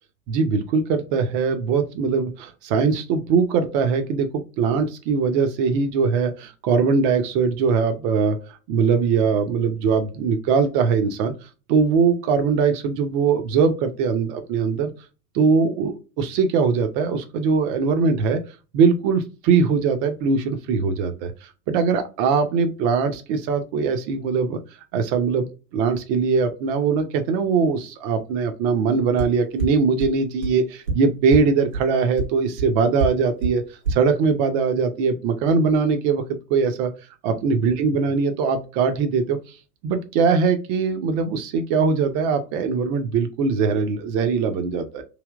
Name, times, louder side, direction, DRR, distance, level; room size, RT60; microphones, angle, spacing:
voice 1, 0.3-11.3 11.7-14.9 15.3-18.4 18.7-24.6 24.9-33.6 33.9-36.9 37.2-39.4 39.8-45.0, right 5 dB, 35° right, 7 dB, 0.6 m, -21 dB
sound 1, 29.2-29.3 29.6-29.7 30.0-30.1 30.4-30.5 30.9-31.0 31.3-31.4 31.7-31.8 32.2-32.3 32.6-32.7 33.0-33.1 33.4-33.5 33.8-33.9, right 3 dB, 90° right, 1.3 m, -23 dB
3.3 x 2.8 x 2.3 m, 0.32 s
figure-of-eight pair, 85°, 48 cm